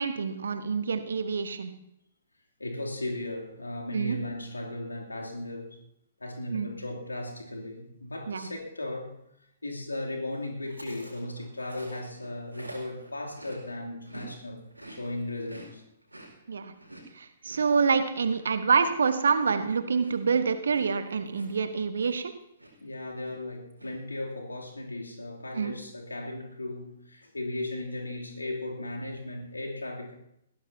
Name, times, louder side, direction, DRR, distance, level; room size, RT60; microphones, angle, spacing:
voice 1, 0.0-1.7 3.9-4.2 6.5-6.7 8.3-8.5 16.5-16.7 17.1-22.3 25.5-25.7, right 5 dB, 60° right, 10 dB, 1.2 m, -27 dB
voice 2, 2.6-5.8 6.2-9.2 9.6-15.8 22.8-30.1, left 1 dB, 80° left, 0 dB, 2.9 m, -36 dB
Chewing mastication, 10.7-14.3 14.6-22.3 22.6-22.9 23.2-23.9, right 1 dB, 85° right, 4.7 m, -49 dB
21.5 x 16.0 x 2.8 m, 0.78 s
figure-of-eight pair, 120°, 0 cm